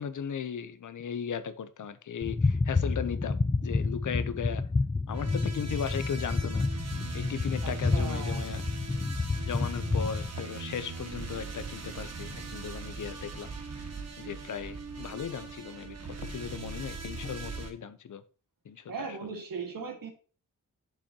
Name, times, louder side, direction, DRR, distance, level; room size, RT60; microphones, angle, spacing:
voice 1, 0.0-4.6 5.1-6.7 7.1-8.6 9.4-13.5 13.8-18.2 18.7-19.1, left 7 dB, 65° left, 0.7 m, -37 dB
sound 1, 2.2-10.3, left 3 dB, 15° left, 0.3 m, -29 dB
sound 2, 5.1-17.7, right 4 dB, 50° right, 1.2 m, -41 dB
voice 2, 7.6-8.4 18.9-20.1, right 5 dB, 90° right, 1.8 m, -38 dB
7.4 x 7.0 x 2.9 m
wide cardioid pair, 135°, 33 cm